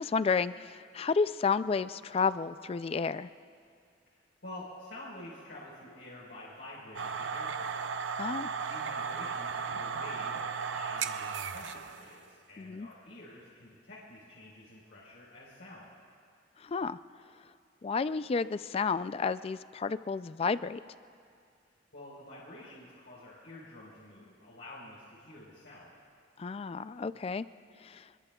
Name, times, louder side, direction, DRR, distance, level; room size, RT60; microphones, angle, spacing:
voice 1, 0.0-3.3 8.2-8.5 12.6-12.9 16.6-17.0 17.8-20.8 26.4-27.4 27.8-28.1, left 5 dB, 30° left, 14 dB, 0.3 m, -31 dB
voice 2, 4.1-8.4 8.7-15.9 21.9-26.0, left 1 dB, 80° left, -7 dB, 4.2 m, -49 dB
sound 1, 6.9-12.1, right 6 dB, 85° right, 0.5 m, -35 dB
26.0 x 22.0 x 2.3 m, 2.3 s
head